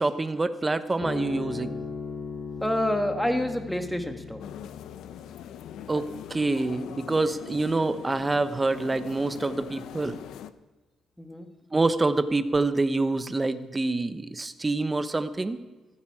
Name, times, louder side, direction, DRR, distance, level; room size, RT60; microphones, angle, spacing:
voice 1, 0.0-1.8 5.9-10.2 11.7-15.6, right 2 dB, 20° right, 11 dB, 1.0 m, -26 dB
sound 1, 1.0-7.7, left 5 dB, 60° left, 2.8 m, -39 dB
voice 2, 2.6-4.4 11.2-11.5, left 1 dB, 5° left, 5 dB, 1.9 m, -27 dB
sound 2, 4.4-10.5, left 10 dB, 80° left, 0.6 m, -42 dB
15.0 x 14.5 x 4.9 m, 1.2 s
cardioid pair, 90°, 0 cm